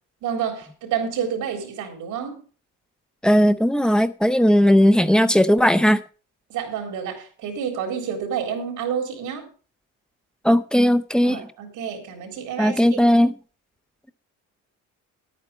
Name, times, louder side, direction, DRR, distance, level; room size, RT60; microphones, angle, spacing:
voice 1, 0.2-2.4 6.5-9.5 11.2-13.0, right 7 dB, 70° right, 3.8 m, -29 dB
voice 2, 3.2-6.0 10.4-11.4 12.6-13.3, equal, 5° left, 0.6 m, -17 dB
11.0 x 9.0 x 5.1 m
cardioid pair, 150°, 31 cm